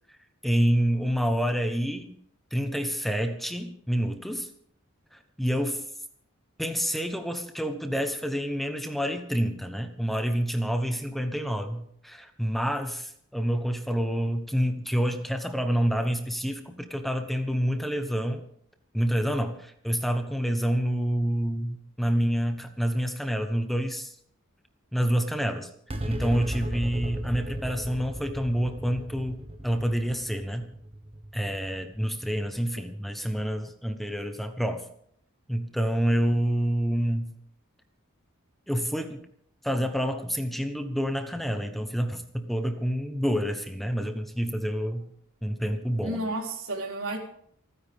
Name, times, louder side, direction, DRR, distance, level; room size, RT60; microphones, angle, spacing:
voice 1, 0.4-2.1 2.5-4.5 5.1-5.8 6.6-18.4 18.9-24.1 24.9-25.7 26.0-29.4 29.6-30.7 31.3-34.8 35.5-37.3 38.7-39.3 39.6-45.1 45.4-46.2, equal, ahead, 6 dB, 1.0 m, -28 dB
sound 1, 25.9-32.6, equal, 25° right, 1.3 m, -36 dB
voice 2, 46.0-47.2, right 1 dB, 80° right, 1 dB, 3.9 m, -31 dB
28.5 x 9.8 x 3.6 m, 0.66 s
head